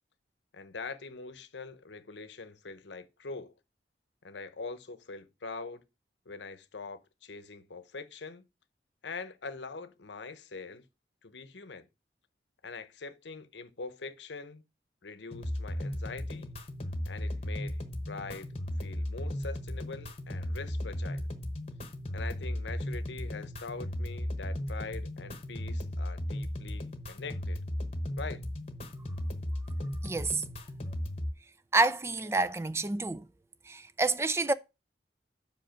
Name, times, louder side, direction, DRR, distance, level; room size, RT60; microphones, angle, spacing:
voice 1, 0.5-3.5 4.2-5.8 6.3-8.4 9.0-10.9 11.2-11.9 12.6-14.6 15.0-16.5 17.1-17.8 18.1-18.5 18.8-21.2 22.1-27.6 28.2-28.4, left 4 dB, 85° left, 0.9 m, -43 dB
sound 1, 15.3-31.3, left 1 dB, 35° left, 1.0 m, -36 dB
voice 2, 30.0-30.4 31.7-33.2 33.7-34.5, right 3 dB, 15° right, 0.3 m, -28 dB
5.4 x 5.1 x 5.7 m
head